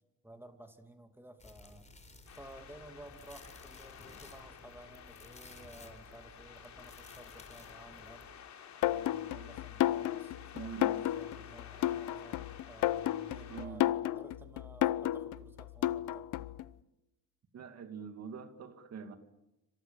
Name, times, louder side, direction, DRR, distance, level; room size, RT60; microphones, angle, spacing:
voice 1, 0.2-1.9 2.3-8.2 8.8-16.5, right 1 dB, 5° right, 2.5 m, -54 dB
sound 1, 1.4-8.3, left 2 dB, 25° left, 4.6 m, -56 dB
sound 2, 2.3-13.7, left 8 dB, 65° left, 4.3 m, -52 dB
sound 3, 8.8-16.6, left 14 dB, 85° left, 0.9 m, -32 dB
voice 2, 10.5-11.0 13.5-13.8 17.5-19.2, right 6 dB, 55° right, 2.6 m, -44 dB
27.5 x 26.5 x 7.2 m
cardioid pair, 110°, 30 cm